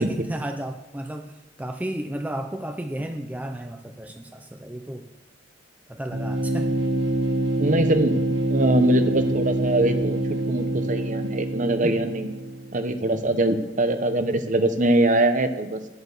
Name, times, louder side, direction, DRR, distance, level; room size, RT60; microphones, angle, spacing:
voice 1, 0.0-5.1 5.9-6.7 11.8-12.0, right 1 dB, 10° right, 5 dB, 0.5 m, -33 dB
sound 1, 6.1-12.8, right 1 dB, 65° right, 1.4 m, -25 dB
voice 2, 7.6-8.2 8.5-12.3 12.7-15.9, right 1 dB, 45° right, 9 dB, 0.9 m, -22 dB
10.0 x 8.2 x 7.1 m, 1.1 s
head